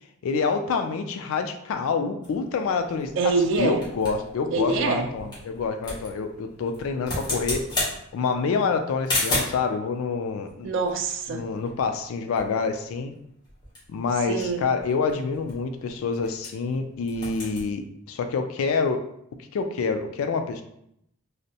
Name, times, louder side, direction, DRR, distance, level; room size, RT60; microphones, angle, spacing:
voice 1, 0.2-7.6 8.1-10.7 11.3-13.1 13.9-17.8 18.1-19.0 19.5-20.6, left 4 dB, 70° left, 7 dB, 0.3 m, -27 dB
sound 1, 2.2-9.7 10.5-12.1 12.4-12.5 12.7-13.0 13.4-16.8 17.0-17.7, left 1 dB, 20° left, 0.8 m, -34 dB
voice 2, 3.2-3.8 4.5-5.1 10.6-11.4 14.3-14.6, right 4 dB, 55° right, 4 dB, 0.3 m, -24 dB
2.5 x 2.1 x 2.7 m, 0.75 s
head